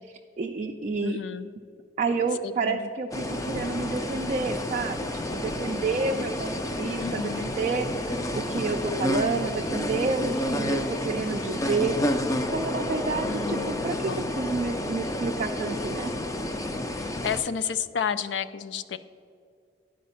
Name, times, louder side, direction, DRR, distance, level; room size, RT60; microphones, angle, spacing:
voice 1, 0.1-1.2 2.0-11.9 12.5-13.9 14.3-16.1, right 4 dB, 40° right, 2 dB, 0.4 m, -29 dB
voice 2, 1.0-1.5 2.4-2.9 7.0-7.5 13.2-13.8 14.1-14.3 16.9-19.0, left 7 dB, 75° left, 13 dB, 0.4 m, -31 dB
sound 1, 3.1-17.4, left 1 dB, 20° left, 0.5 m, -30 dB
sound 2, 3.3-11.8, left 3 dB, 50° left, 0.8 m, -49 dB
10.0 x 5.1 x 5.6 m, 2.3 s
head